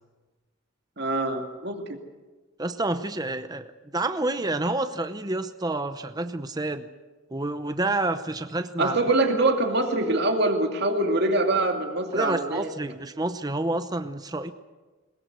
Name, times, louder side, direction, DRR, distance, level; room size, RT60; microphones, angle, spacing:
voice 1, 1.0-1.8 8.8-12.7, right 2 dB, 50° right, 4 dB, 2.5 m, -24 dB
voice 2, 2.6-6.9 7.3-9.0 12.1-14.5, right 2 dB, 20° right, 10 dB, 0.8 m, -29 dB
21.5 x 20.5 x 8.1 m, 1.3 s
head